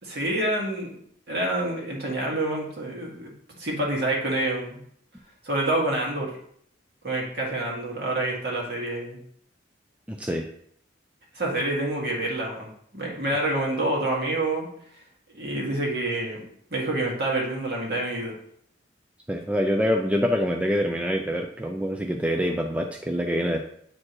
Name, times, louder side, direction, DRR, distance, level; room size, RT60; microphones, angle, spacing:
voice 1, 0.0-0.9 1.3-3.3 3.6-4.8 5.4-6.3 7.0-9.2 11.3-12.7 12.9-14.7 15.3-18.4, right 1 dB, 55° right, -2 dB, 2.0 m, -27 dB
voice 2, 10.1-10.5 19.3-23.6, equal, 5° right, 2 dB, 0.4 m, -25 dB
8.6 x 4.4 x 3.1 m, 0.67 s
head